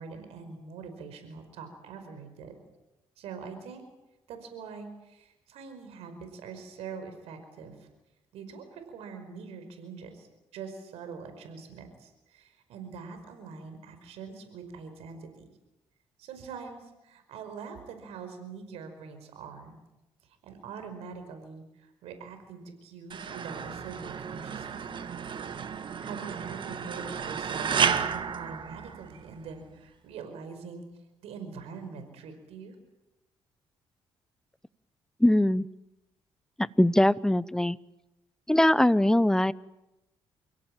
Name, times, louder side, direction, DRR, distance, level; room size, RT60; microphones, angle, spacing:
voice 1, 0.0-2.6 3.2-3.8 4.3-7.9 8.3-10.3 10.5-15.4 16.2-19.8 20.2-24.9 26.0-30.9 31.2-32.7, right 5 dB, 85° right, 7 dB, 5.2 m, -43 dB
sound 1, 23.1-29.4, right 7 dB, 50° right, 1.7 m, -32 dB
voice 2, 35.2-35.7 36.8-37.8 38.5-39.5, left 1 dB, 5° left, 17 dB, 0.8 m, -21 dB
29.0 x 17.0 x 9.0 m, 0.94 s
cardioid pair, 85°, 10 cm